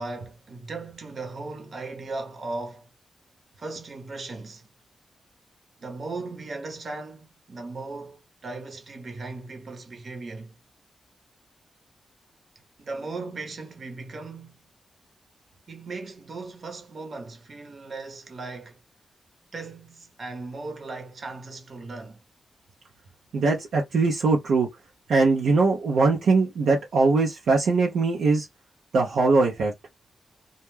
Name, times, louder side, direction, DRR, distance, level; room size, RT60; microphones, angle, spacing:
voice 1, 0.0-2.9 3.6-4.7 5.8-10.6 12.8-14.6 15.7-18.8 19.5-22.2, right 3 dB, 60° right, 0.9 m, -37 dB
voice 2, 23.3-24.7 25.1-28.5 28.9-29.7, right 3 dB, 80° right, 0.6 m, -21 dB
2.3 x 2.1 x 3.1 m
supercardioid pair, 40°, 0 cm